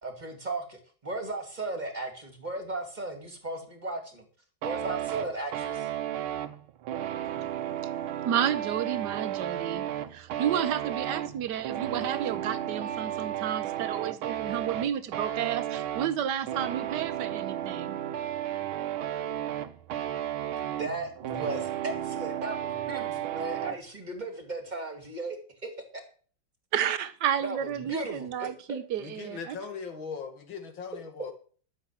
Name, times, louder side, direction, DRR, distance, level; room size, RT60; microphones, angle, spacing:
voice 1, 0.0-4.2 4.6-5.9 20.8-25.4 25.6-26.0 27.4-28.8 31.2-31.3, right 2 dB, 20° right, 2.5 m, -36 dB
sound 1, 4.6-23.8, right 11 dB, 90° right, 1.8 m, -33 dB
voice 2, 8.2-9.9 10.1-18.0 26.7-29.5, right 9 dB, 60° right, 1.4 m, -31 dB
voice 3, 29.0-31.3, left 5 dB, 70° left, 2.6 m, -39 dB
12.5 x 7.1 x 7.3 m
omnidirectional pair, 2.2 m